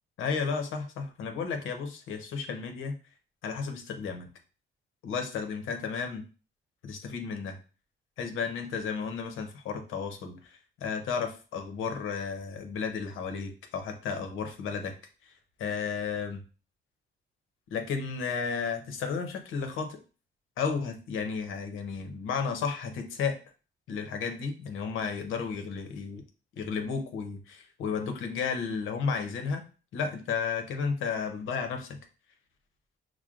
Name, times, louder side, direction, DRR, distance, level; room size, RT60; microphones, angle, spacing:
voice 1, 0.2-3.0 3.4-4.3 5.0-6.2 6.8-7.6 8.2-14.9 15.6-16.4 17.7-20.0 20.6-23.4 23.9-26.2 26.6-29.7 29.9-32.0, left 5 dB, 85° left, 5 dB, 0.8 m, -33 dB
6.0 x 2.1 x 2.4 m, 0.35 s
cardioid pair, 90°, 20 cm